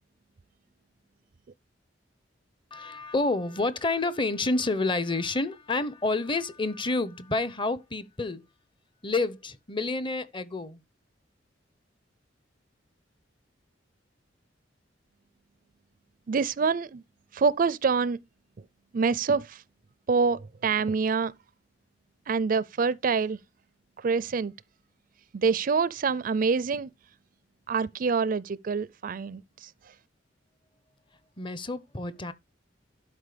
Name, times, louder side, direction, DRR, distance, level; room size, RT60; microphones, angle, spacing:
voice 1, 2.7-8.4 9.0-10.8 31.4-32.3, left 3 dB, 25° left, 0.8 m, -29 dB
voice 2, 16.3-17.0 17.3-18.2 18.9-19.6 20.1-21.3 22.3-23.4 24.0-24.5 25.3-26.9 27.7-29.7, right 5 dB, 45° right, 0.4 m, -26 dB
11.5 x 5.2 x 5.0 m
head